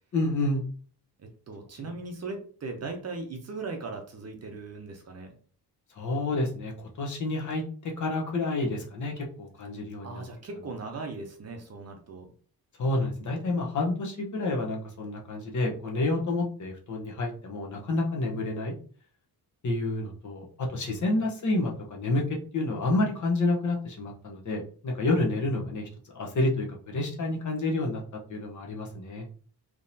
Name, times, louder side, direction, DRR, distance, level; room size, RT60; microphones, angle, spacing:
voice 1, 0.1-0.6 1.8-1.9 5.9-10.2 12.8-18.7 19.6-22.2 22.5-28.0 28.3-29.2, left 2 dB, 45° left, 0 dB, 1.0 m, -29 dB
voice 2, 1.2-5.3 10.0-12.3, right 3 dB, 40° right, 3 dB, 0.7 m, -38 dB
3.6 x 3.0 x 2.7 m, 0.43 s
wide cardioid pair, 160°, 40 cm